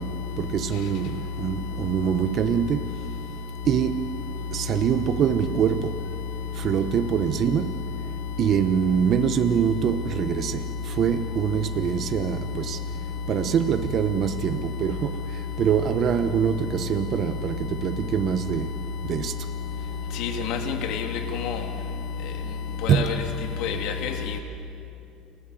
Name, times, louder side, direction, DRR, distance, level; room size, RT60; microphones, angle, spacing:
voice 1, 0.0-2.9 3.7-4.2 4.5-6.0 6.6-7.7 8.4-12.8 13.3-15.2 15.6-18.8 19.0-19.4 22.9-23.1, right 8 dB, 50° right, 1.0 m, -24 dB
voice 2, 20.2-21.1 21.3-21.6 22.8-23.1 23.6-24.1, left 7 dB, 70° left, 2.6 m, -28 dB
29.5 x 19.5 x 7.8 m
supercardioid pair, 110°, 0 cm